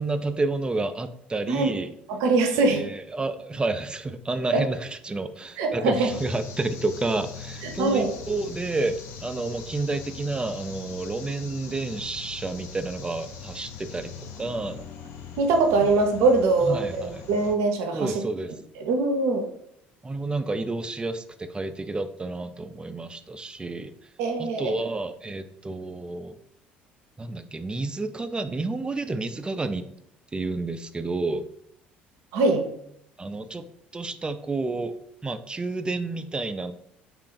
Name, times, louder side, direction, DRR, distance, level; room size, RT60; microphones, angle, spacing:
voice 1, 0.0-2.0 2.6-14.8 15.8-15.9 16.6-17.3 17.9-18.5 20.0-23.9 24.4-26.4 27.2-29.9 30.3-31.5 33.2-33.6 33.9-35.0 35.2-36.7, right 3 dB, 15° right, 10 dB, 0.3 m, -30 dB
voice 2, 2.2-2.8 5.6-6.1 7.6-8.1 15.4-17.0 17.3-18.1 18.8-19.5 24.2-24.7 32.3-32.7, right 3 dB, 65° right, 5 dB, 0.6 m, -22 dB
sound 1, 6.1-17.5, left 5 dB, 60° left, 0.5 m, -41 dB
3.2 x 2.5 x 3.7 m, 0.72 s
hypercardioid pair, 60°, 5 cm